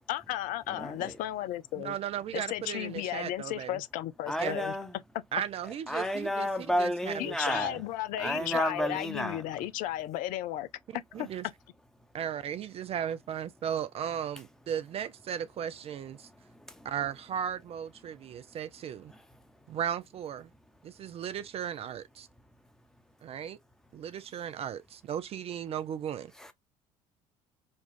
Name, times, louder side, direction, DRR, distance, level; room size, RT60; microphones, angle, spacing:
voice 1, 0.1-2.0 2.3-4.8 7.2-10.7 11.2-11.3, left 13 dB, 50° left, 0.5 m, -34 dB
voice 2, 0.7-1.2 4.3-5.0 5.9-7.8 8.2-9.5 16.2-16.9 18.1-18.6 19.1-19.8 26.4-26.5, equal, 5° left, 1.0 m, -33 dB
voice 3, 1.8-3.8 4.4-4.6 5.3-6.5 6.8-7.8 8.2-8.5 11.1-11.4 12.1-16.3 16.8-19.1 19.7-20.5 20.8-22.3 23.2-23.6 23.9-26.3, right 9 dB, 35° right, 0.4 m, -36 dB
5.2 x 2.4 x 2.4 m
figure-of-eight pair, 60°, 18 cm